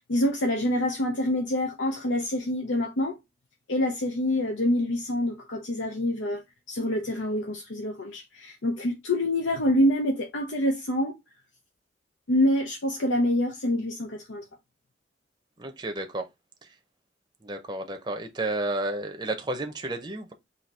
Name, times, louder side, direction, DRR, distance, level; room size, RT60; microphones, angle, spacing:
voice 1, 0.1-3.2 3.7-6.4 6.7-11.2 12.3-14.4, left 1 dB, 90° left, 0.7 m, -26 dB
voice 2, 15.6-16.3 16.6-16.7 17.4-20.3, right 2 dB, 25° right, 0.6 m, -32 dB
4.2 x 2.8 x 4.5 m
head